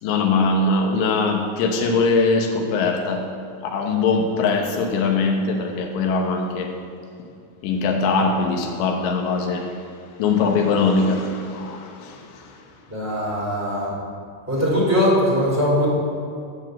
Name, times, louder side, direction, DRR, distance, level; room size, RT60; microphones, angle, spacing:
voice 1, 0.0-3.2 3.7-6.7 7.6-9.6 10.2-12.2, left 4 dB, 80° left, 2 dB, 3.3 m, -21 dB
voice 2, 12.9-13.9 14.5-15.9, equal, 5° right, -5 dB, 1.8 m, -20 dB
12.0 x 5.7 x 7.6 m, 2.4 s
omnidirectional pair, 5.0 m